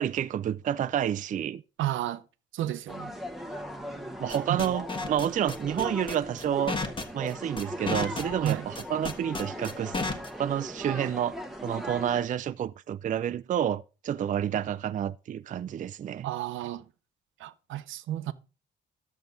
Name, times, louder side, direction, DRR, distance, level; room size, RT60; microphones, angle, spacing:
voice 1, 0.0-1.6 4.2-6.8 7.1-10.0 10.4-11.3 11.6-16.3, right 10 dB, 40° right, 0.4 m, -29 dB
voice 2, 1.8-2.2 2.5-3.1 4.5-4.6 8.4-8.7 16.2-16.8 17.4-18.3, right 13 dB, 80° right, 0.7 m, -32 dB
sound 1, 2.9-12.3, equal, ahead, 1.1 m, -39 dB
sound 2, 4.3-10.3, left 3 dB, 25° left, 1.3 m, -32 dB
10.5 x 7.3 x 3.9 m
cardioid pair, 90°, 20 cm